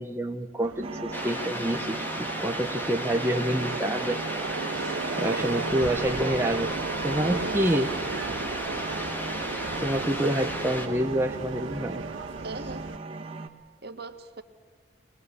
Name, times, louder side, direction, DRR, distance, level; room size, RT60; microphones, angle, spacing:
voice 1, 0.0-4.2 5.2-6.7 7.0-7.9 9.8-12.0, right 1 dB, 15° right, 3 dB, 1.0 m, -27 dB
Subway metro underground, 0.6-13.0, right 4 dB, 80° right, 0.6 m, -36 dB
sound 1, 0.8-13.5, right 3 dB, 30° right, 1.9 m, -38 dB
sound 2, 1.1-10.9, equal, 10° left, 2.0 m, -34 dB
voice 2, 4.7-5.3 7.2-7.6 12.4-12.9 13.8-14.4, right 3 dB, 55° right, 7 dB, 1.8 m, -40 dB
24.0 x 20.5 x 8.3 m, 1.5 s
head